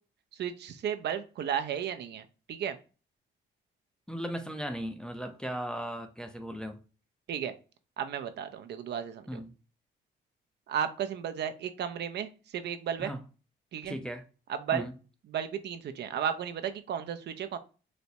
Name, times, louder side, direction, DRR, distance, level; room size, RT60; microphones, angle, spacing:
voice 1, 0.4-2.2 2.5-2.8 7.3-7.5 8.0-9.4 10.7-13.1 13.7-14.0 14.5-14.8 15.3-17.6, right 8 dB, 60° right, 0.4 m, -34 dB
voice 2, 4.1-6.8 9.3-9.5 13.0-13.2 13.8-14.2 14.7-14.9, equal, 5° left, 0.5 m, -37 dB
4.1 x 2.1 x 2.7 m
cardioid pair, 90°, 20 cm